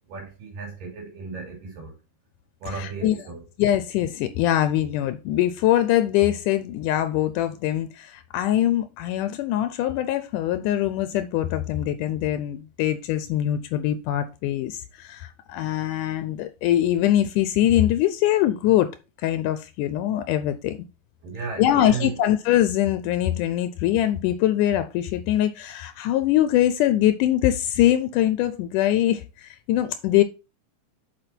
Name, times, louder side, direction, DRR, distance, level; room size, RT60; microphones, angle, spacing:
voice 1, 0.1-1.9 2.6-3.4 21.2-22.2, right 5 dB, 85° right, 4.7 m, -34 dB
voice 2, 2.7-3.2 3.6-18.9 19.2-20.8 21.6-30.2, left 12 dB, 80° left, 2.1 m, -23 dB
6.9 x 5.6 x 4.4 m
omnidirectional pair, 3.7 m